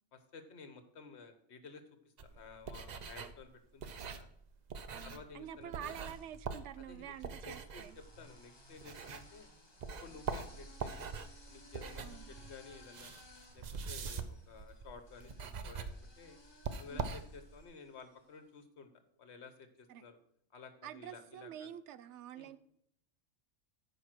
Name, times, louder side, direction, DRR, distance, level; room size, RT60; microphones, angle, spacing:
voice 1, 0.1-4.3 4.9-5.9 6.8-7.1 7.4-7.8 8.2-9.5 10.0-11.0 11.4-13.1 13.5-16.4 16.8-18.9 19.2-20.2 20.5-21.7 22.3-22.5, left 5 dB, 65° left, 1.3 m, -53 dB
sound 1, 2.2-9.5 9.8-17.6, right 5 dB, 50° right, 0.5 m, -44 dB
sound 2, 4.6-5.3 6.0-18.3, left 2 dB, 20° left, 1.1 m, -61 dB
voice 2, 4.9-8.0 12.0-12.3 16.9-17.1 19.9-20.0 20.8-22.6, right 10 dB, 75° right, 0.9 m, -48 dB
9.6 x 5.1 x 6.1 m
omnidirectional pair, 1.2 m